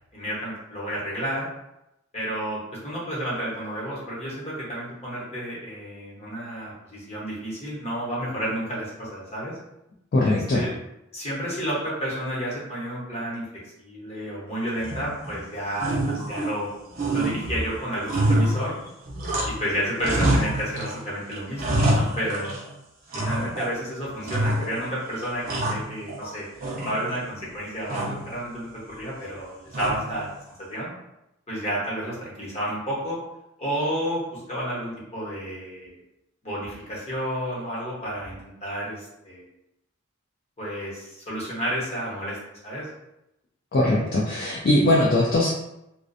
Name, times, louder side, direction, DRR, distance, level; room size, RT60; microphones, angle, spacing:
voice 1, 0.1-1.5 2.1-9.6 10.3-10.7 11.1-13.5 13.8-16.7 17.1-18.7 19.5-22.5 23.1-26.5 26.8-30.3 30.6-30.9 31.5-33.2 33.6-34.2 34.5-36.0 36.4-39.4 40.6-42.4 42.6-42.9, equal, 30° left, -7 dB, 0.9 m, -31 dB
voice 2, 10.1-10.6 43.7-45.5, left 1 dB, 50° left, -4 dB, 0.4 m, -20 dB
sound 1, 14.8-15.4 15.7-16.7 17.0-19.7 20.0-21.0 21.3-22.7 23.1-23.8 24.2-24.9 25.2-26.3 26.6-27.3 27.9-28.3 29.7-30.2, right 1 dB, 45° right, 0.5 m, -26 dB
2.4 x 2.1 x 2.5 m, 0.87 s
head